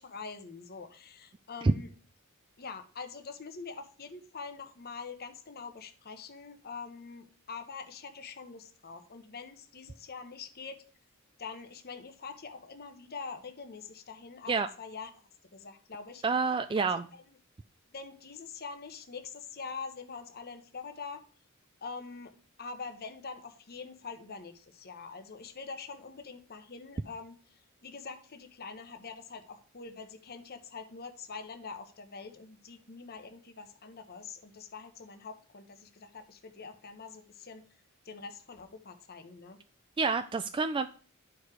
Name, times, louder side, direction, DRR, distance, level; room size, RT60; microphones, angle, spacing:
voice 1, 0.0-1.9 2.6-10.8 11.4-15.1 15.5-16.2 16.8-17.2 17.9-21.3 21.8-37.6 38.0-39.6, left 5 dB, 45° left, 7 dB, 1.0 m, -44 dB
voice 2, 16.2-17.1 40.0-40.9, right 4 dB, 25° right, 9 dB, 0.3 m, -27 dB
11.0 x 4.8 x 4.9 m, 0.42 s
head